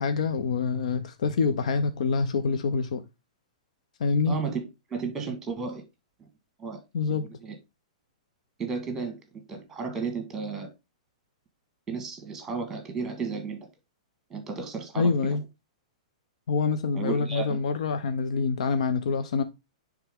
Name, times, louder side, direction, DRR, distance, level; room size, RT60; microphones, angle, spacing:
voice 1, 0.0-3.0 4.0-4.3 6.9-7.3 15.0-15.4 16.5-19.4, left 5 dB, 75° left, 0.8 m, -26 dB
voice 2, 4.3-4.6 4.9-5.8 6.2-6.3 6.6-6.8 7.1-7.5 8.6-9.2 9.5-10.7 11.9-13.6 14.3-15.4 16.9-17.6, right 5 dB, 10° right, 1.5 m, -33 dB
9.1 x 3.6 x 3.6 m
hypercardioid pair, 155°, 4 cm